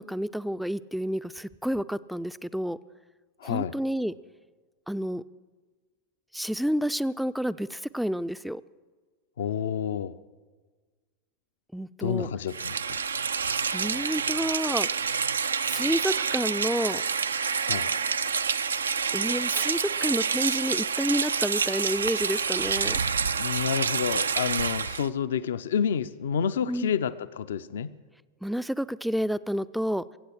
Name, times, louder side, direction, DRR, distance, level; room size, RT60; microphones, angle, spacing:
voice 1, 0.0-2.8 3.4-4.1 4.9-5.2 6.3-8.6 11.7-12.3 13.7-14.9 15.6-17.0 19.1-23.0 26.7-26.9 28.4-30.0, equal, ahead, 15 dB, 0.4 m, -29 dB
voice 2, 3.4-3.7 9.4-10.2 12.0-13.0 17.6-17.9 23.4-27.9, left 7 dB, 60° left, 13 dB, 0.5 m, -29 dB
Rain, 12.5-25.1, right 6 dB, 70° right, 0.4 m, -28 dB
24.0 x 8.2 x 6.3 m, 1.4 s
figure-of-eight pair, 90°, 0 cm